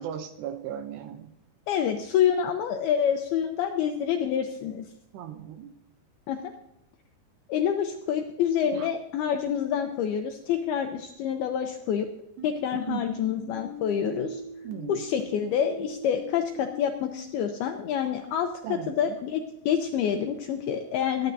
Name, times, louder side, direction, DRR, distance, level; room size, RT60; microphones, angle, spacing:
voice 1, 0.0-1.3 5.1-5.7 8.7-8.9 12.7-13.1 14.6-15.0 18.6-19.2, right 9 dB, 80° right, 8 dB, 2.6 m, -37 dB
voice 2, 1.7-4.9 6.3-6.4 7.5-12.1 12.4-14.4 14.9-21.3, left 8 dB, 80° left, 5 dB, 2.2 m, -27 dB
sound 1, 12.4-17.5, left 1 dB, 60° right, 2.7 m, -42 dB
21.5 x 10.5 x 2.7 m, 0.87 s
omnidirectional pair, 5.3 m